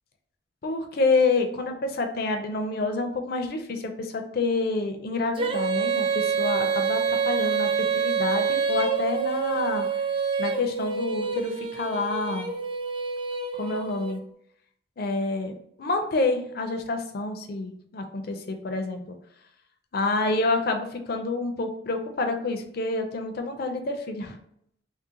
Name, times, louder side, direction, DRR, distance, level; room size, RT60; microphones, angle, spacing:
voice 1, 0.6-7.7 8.0-9.9 10.4-12.5 13.5-14.2 15.0-15.5 15.8-19.1 19.9-24.4, left 3 dB, 55° left, 5 dB, 0.5 m, -28 dB
Female singing, 5.4-14.2, right 5 dB, 30° right, 0.4 m, -27 dB
3.7 x 2.1 x 2.7 m, 0.70 s
head